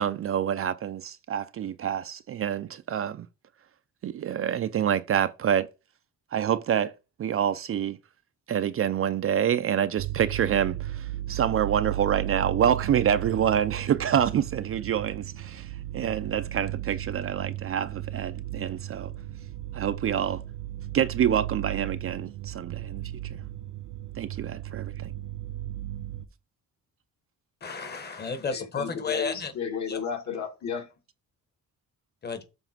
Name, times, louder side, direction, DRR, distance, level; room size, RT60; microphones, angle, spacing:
voice 1, 0.0-3.3 4.0-5.7 6.3-6.9 7.2-8.0 8.5-19.1 19.7-20.4 20.9-23.0 24.2-25.1, right 9 dB, 45° right, 0.4 m, -27 dB
sound 1, 10.0-26.3, right 13 dB, 80° right, 0.7 m, -35 dB
voice 2, 27.6-29.5 29.9-30.0 32.2-32.4, left 5 dB, 30° left, 1.3 m, -32 dB
voice 3, 28.4-30.9, left 6 dB, 55° left, 2.0 m, -33 dB
7.1 x 3.3 x 5.9 m
cardioid pair, 150°, 33 cm